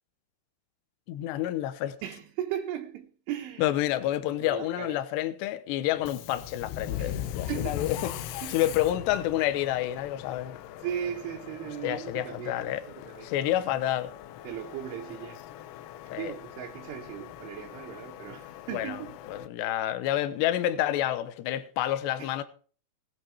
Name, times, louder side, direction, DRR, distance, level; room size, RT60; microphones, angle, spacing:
voice 1, 1.1-2.0 3.6-10.6 11.8-12.8 13.2-14.1 16.1-16.3 18.7-19.0 19.3-22.4, left 13 dB, 75° left, 2.9 m, -29 dB
voice 2, 2.0-4.1 4.4-5.0 7.0-7.2 7.5-7.9 8.4-8.7 10.8-13.3 14.4-15.4 16.1-19.2 22.2-22.4, right 10 dB, 80° right, 3.6 m, -37 dB
Subway metro underground, 6.0-19.5, left 11 dB, 90° left, 3.4 m, -40 dB
19.0 x 8.8 x 4.7 m
omnidirectional pair, 5.6 m